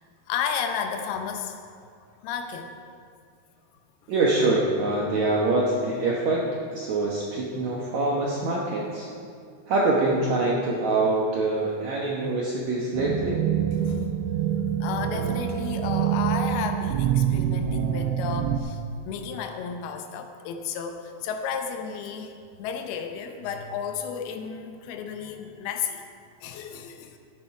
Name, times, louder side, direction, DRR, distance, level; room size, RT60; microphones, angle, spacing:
voice 1, 0.3-1.6 2.2-2.7 4.0-4.1 13.7-14.1 14.8-18.8 19.1-22.3 22.6-26.0 26.4-27.2, left 7 dB, 80° left, 6 dB, 2.6 m, -32 dB
voice 2, 4.1-6.4 6.7-9.1 9.7-13.4, right 2 dB, 70° right, -3 dB, 1.7 m, -24 dB
sound 1, 12.9-18.6, right 10 dB, 90° right, 2.8 m, -26 dB
13.5 x 9.5 x 4.7 m, 2.3 s
omnidirectional pair, 4.7 m